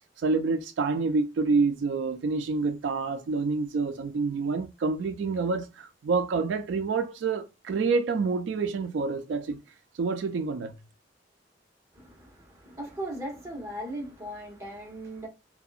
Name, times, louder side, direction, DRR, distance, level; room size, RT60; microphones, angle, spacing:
voice 1, 0.2-9.6 10.0-10.8, right 4 dB, 85° right, 0.3 m, -27 dB
voice 2, 11.9-15.3, right 1 dB, 15° right, 1.0 m, -38 dB
2.7 x 2.2 x 2.4 m
head